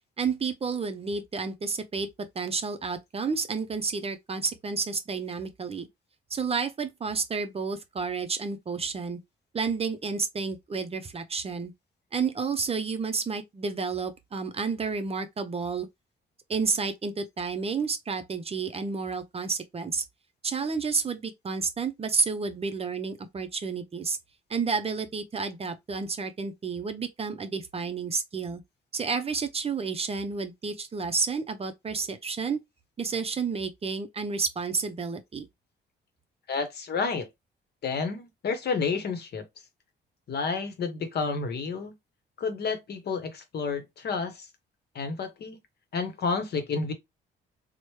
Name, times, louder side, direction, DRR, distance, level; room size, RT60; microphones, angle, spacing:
voice 1, 0.2-5.9 6.3-9.2 9.5-11.7 12.1-15.9 16.5-20.0 20.4-24.2 24.5-28.6 28.9-32.6 33.0-35.5, right 5 dB, 30° right, 0.5 m, -30 dB
voice 2, 36.5-37.3 37.8-39.4 40.3-41.9 42.4-44.5 44.9-45.6 45.9-46.9, left 4 dB, 55° left, 0.8 m, -30 dB
3.0 x 2.1 x 3.0 m
cardioid pair, 90°, 20 cm